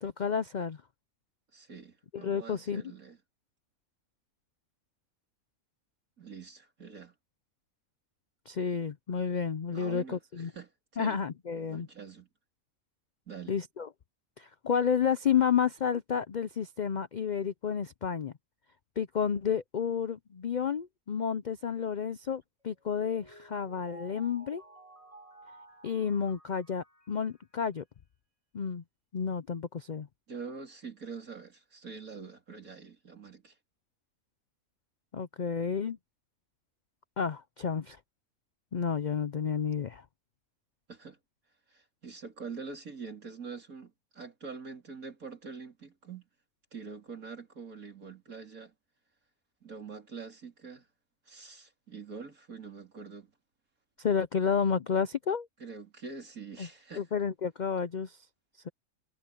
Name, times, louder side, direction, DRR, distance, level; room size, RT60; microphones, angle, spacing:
voice 1, 0.0-0.8 2.1-2.8 8.5-10.5 11.0-11.9 13.5-13.9 14.4-18.3 19.0-24.6 25.8-27.8 28.5-28.8 29.1-30.1 35.1-36.0 37.2-38.0 38.7-40.0 54.0-55.5 56.6-56.7 57.0-58.2 58.6-58.7, left 7 dB, 60° left, 0.4 m, -31 dB
voice 2, 1.5-3.2 6.2-7.1 9.7-11.2 11.5-12.3 13.3-13.5 30.3-33.5 40.9-41.2 41.7-46.3 46.7-48.7 49.6-50.9 51.3-53.3 55.6-57.1, right 5 dB, 70° right, 4.2 m, -45 dB
Mallet percussion, 22.6-27.6, right 2 dB, 20° right, 5.9 m, -54 dB
omnidirectional pair, 1.5 m